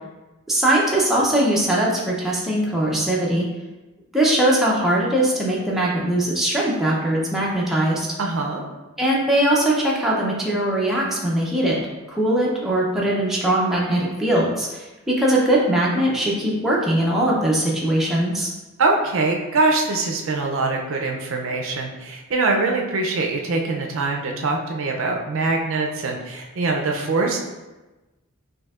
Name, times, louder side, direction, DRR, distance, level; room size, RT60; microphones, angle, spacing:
voice 1, 0.5-3.5 4.1-8.1 9.0-11.8 12.1-18.5, right 1 dB, ahead, -5 dB, 0.5 m, -21 dB
voice 2, 8.2-8.6 18.8-27.4, right 3 dB, 60° right, 1 dB, 0.4 m, -23 dB
4.3 x 2.6 x 2.4 m, 1.1 s
head